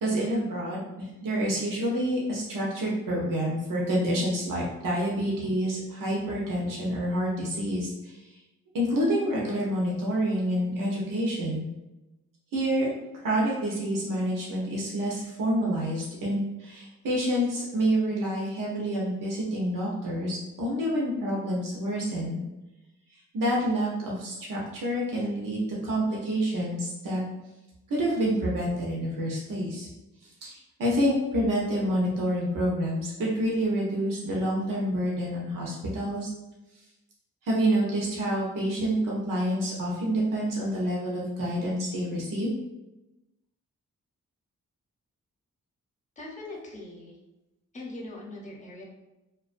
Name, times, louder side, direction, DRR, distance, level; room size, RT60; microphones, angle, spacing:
voice 1, 0.0-8.2 8.7-11.7 12.5-12.9 13.2-22.4 23.3-27.2 27.9-29.9 30.4-36.3 37.4-42.5, equal, 80° right, -4 dB, 0.7 m, -28 dB
voice 2, 46.2-47.2 47.7-48.8, left 2 dB, 25° left, -2 dB, 0.7 m, -41 dB
2.3 x 2.2 x 2.4 m, 0.99 s
cardioid pair, 50°, 32 cm